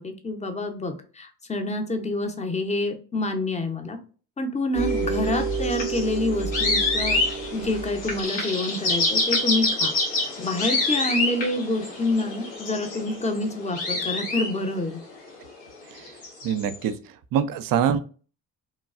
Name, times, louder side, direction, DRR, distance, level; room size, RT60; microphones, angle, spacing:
voice 1, 0.0-4.0 4.4-7.2 7.5-9.9 10.4-15.0, left 2 dB, 15° left, 6 dB, 0.6 m, -27 dB
sound 1, 4.7-15.0 16.0-16.8, left 1 dB, 85° left, 1.2 m, -26 dB
voice 2, 16.4-16.9 17.3-18.0, right 8 dB, 55° right, 12 dB, 0.5 m, -23 dB
3.1 x 2.2 x 2.4 m, 0.39 s
supercardioid pair, 60°, 42 cm